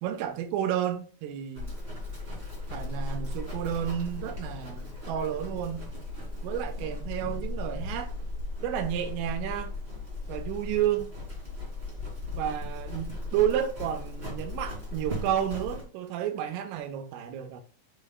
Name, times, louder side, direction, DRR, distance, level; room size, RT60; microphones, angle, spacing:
voice 1, 0.0-1.8 2.7-5.9 6.4-8.1 8.6-9.7 10.3-11.1 12.4-17.6, right 10 dB, 90° right, 3.6 m, -31 dB
Livestock farm animals working animals, 1.5-15.8, left 2 dB, 40° right, 0.8 m, -37 dB
6.8 x 6.4 x 2.2 m
omnidirectional pair, 5.6 m